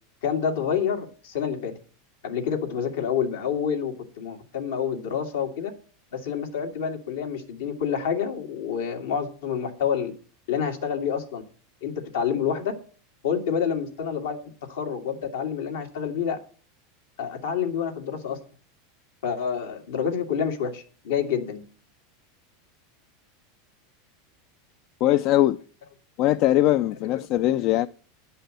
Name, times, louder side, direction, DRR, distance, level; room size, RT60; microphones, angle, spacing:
voice 1, 0.2-1.7 2.2-5.7 6.1-10.1 10.5-11.4 11.8-12.7 13.2-14.4 14.7-16.4 17.2-18.4 19.2-21.6, left 7 dB, 85° left, 2.3 m, -28 dB
voice 2, 25.0-25.6 26.2-27.9, left 14 dB, 50° left, 0.4 m, -21 dB
10.0 x 5.6 x 7.5 m
supercardioid pair, 125°, 0 cm